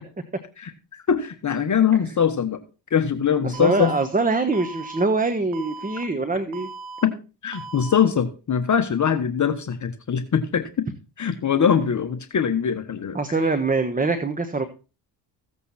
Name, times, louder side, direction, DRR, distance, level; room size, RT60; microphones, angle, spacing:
voice 1, 0.6-2.6 2.9-3.9 7.0-7.1 7.4-10.9 11.2-13.2, left 7 dB, 40° left, 8 dB, 1.3 m, -22 dB
voice 2, 3.4-6.7 13.1-14.6, right 3 dB, 20° right, 9 dB, 1.3 m, -23 dB
Alarm, 3.5-4.0 4.5-5.0 5.5-6.0 6.5-7.0 7.5-8.0, right 4 dB, 90° right, 1.5 m, -38 dB
15.5 x 8.2 x 4.3 m, 0.33 s
cardioid pair, 85°, 46 cm